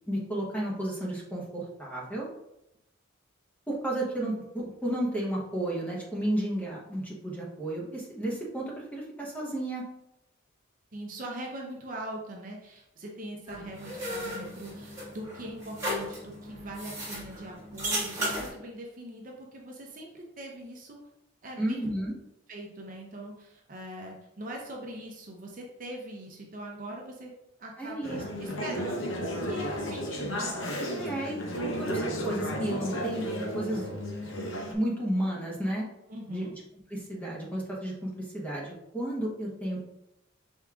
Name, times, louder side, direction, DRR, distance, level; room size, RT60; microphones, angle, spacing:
voice 1, 0.1-2.3 3.7-9.8 21.6-22.1 27.8-28.5 30.9-33.3 33.5-34.0 34.7-35.9 36.3-36.5 36.9-39.8, right 1 dB, 10° left, -4 dB, 0.9 m, -32 dB
voice 2, 10.9-21.1 21.4-21.9 22.5-27.3 27.6-31.7 36.1-36.5, right 1 dB, 40° right, 0 dB, 0.6 m, -42 dB
sound 1, 13.5-18.5, equal, 15° right, 1.4 m, -35 dB
Conversation / Chatter, 28.0-34.7, equal, 65° left, 0.8 m, -33 dB
5.0 x 3.6 x 2.4 m, 0.86 s
head